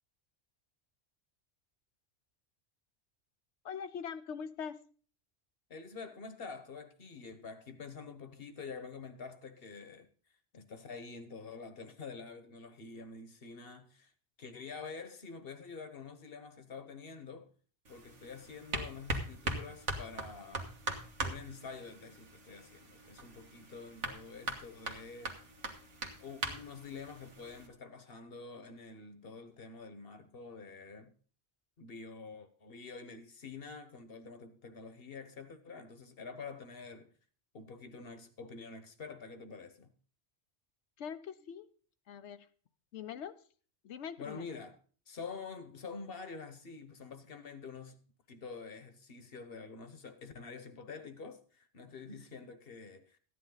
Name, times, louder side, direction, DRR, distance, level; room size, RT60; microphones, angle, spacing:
voice 1, 3.6-4.9 41.0-41.7 42.1-42.5 42.9-43.4 43.8-44.4, left 7 dB, 75° left, 1.0 m, -42 dB
voice 2, 5.7-10.1 10.5-14.1 14.4-17.5 17.9-20.8 21.2-25.4 26.2-31.1 31.8-37.1 37.5-39.9 44.2-44.8 45.1-48.0 48.3-53.2, left 4 dB, 55° left, 1.3 m, -47 dB
sound 1, 17.8-27.7, right 2 dB, 90° right, 1.9 m, -41 dB
14.0 x 9.8 x 3.9 m
omnidirectional pair, 1.2 m